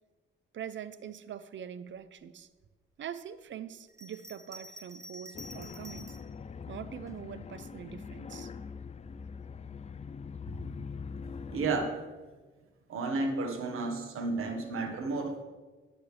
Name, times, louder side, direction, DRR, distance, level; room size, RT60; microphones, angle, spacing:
voice 1, 0.5-2.5 3.0-6.2 6.7-8.5, right 9 dB, 60° right, 14 dB, 0.6 m, -43 dB
Bell, 3.9-6.3 7.1-8.0, equal, 15° right, 0.7 m, -49 dB
sound 1, 5.3-11.9, left 5 dB, 30° left, 0.4 m, -43 dB
voice 2, 11.5-11.9 12.9-15.4, right 3 dB, 80° right, 4 dB, 1.5 m, -32 dB
12.0 x 8.9 x 3.4 m, 1.3 s
cardioid pair, 70°, 21 cm